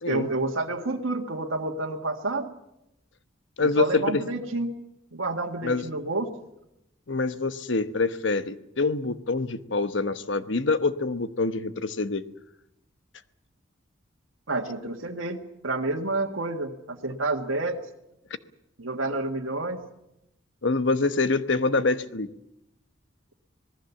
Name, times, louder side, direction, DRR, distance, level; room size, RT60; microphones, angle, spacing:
voice 1, 0.1-2.5 3.6-4.7 5.1-6.3 14.5-17.8 18.8-19.8, right 2 dB, 90° right, 1 dB, 1.8 m, -29 dB
voice 2, 3.6-4.2 5.6-5.9 7.1-12.3 20.6-22.3, left 3 dB, 70° left, 12 dB, 1.1 m, -25 dB
26.0 x 19.5 x 7.2 m, 0.85 s
head